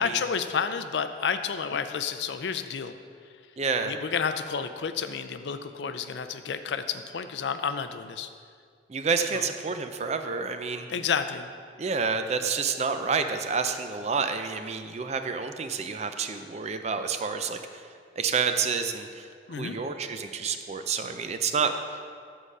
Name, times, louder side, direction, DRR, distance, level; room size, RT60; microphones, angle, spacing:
voice 1, 0.0-2.9 3.8-8.3 9.3-9.4 10.9-11.5 19.5-19.8, left 6 dB, 75° left, 9 dB, 0.4 m, -30 dB
voice 2, 3.6-3.9 8.9-10.9 11.8-17.9 18.2-22.1, right 5 dB, 40° right, 7 dB, 0.5 m, -29 dB
7.7 x 4.8 x 6.6 m, 2.2 s
head